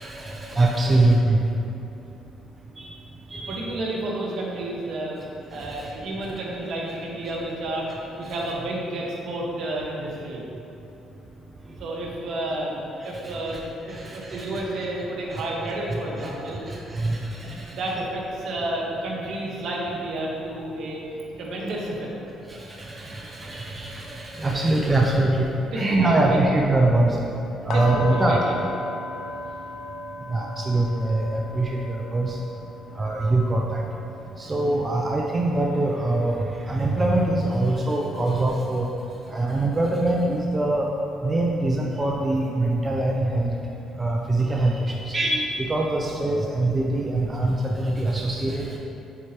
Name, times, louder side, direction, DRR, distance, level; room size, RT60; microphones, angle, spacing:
voice 1, 0.0-1.4 2.8-2.9 3.3-3.7 5.6-5.9 13.2-13.6 13.9-14.4 15.3-15.4 15.9-16.3 16.7-17.7 22.5-25.5 25.7-27.2 27.6-28.4 30.3-32.4 33.0-33.8 34.4-36.4 36.7-38.9 39.3-40.9 41.2-43.5 44.0-48.8, right 2 dB, 25° right, -1 dB, 0.5 m, -23 dB
voice 2, 3.5-5.2 5.5-10.4 11.7-12.8 13.0-16.6 17.4-21.0 21.4-22.1 25.6-26.6 27.6-28.6, right 1 dB, 65° right, -3 dB, 1.3 m, -31 dB
sound 1, 27.7-37.6 38.0-38.2 38.7-38.8, left 2 dB, 65° left, 0.4 m, -38 dB
7.9 x 4.5 x 2.9 m, 2.8 s
cardioid pair, 90°, 0 cm